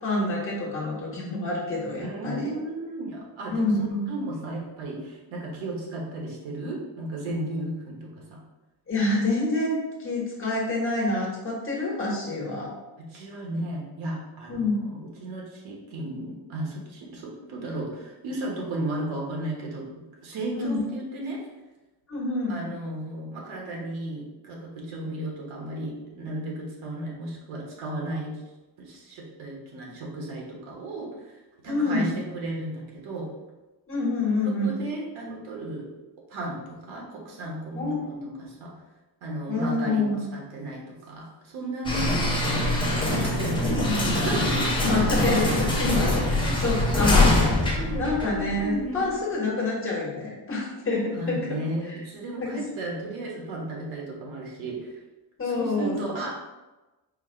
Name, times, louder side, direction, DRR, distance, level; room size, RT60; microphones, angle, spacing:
voice 1, 0.0-2.5 3.5-4.1 8.9-12.7 14.5-14.8 20.5-20.8 22.1-22.6 31.7-32.1 33.9-34.7 37.7-38.3 39.5-40.2 43.6-44.0 44.8-51.4 52.4-52.5 55.4-56.0, left 2 dB, 25° left, -4 dB, 1.2 m, -27 dB
voice 2, 2.0-8.4 13.0-21.4 22.5-28.4 28.8-31.4 31.6-33.3 34.6-35.9 36.3-38.7 39.2-42.4 43.2-45.3 45.6-45.7 46.4-47.0 47.8-48.1 48.5-49.1 51.1-54.9 55.4-56.3, right 2 dB, 85° right, -2 dB, 1.5 m, -34 dB
sound 1, 41.8-48.8, left 2 dB, 10° left, 0.7 m, -23 dB
4.7 x 2.4 x 4.4 m, 1.1 s
cardioid pair, 165°, 46 cm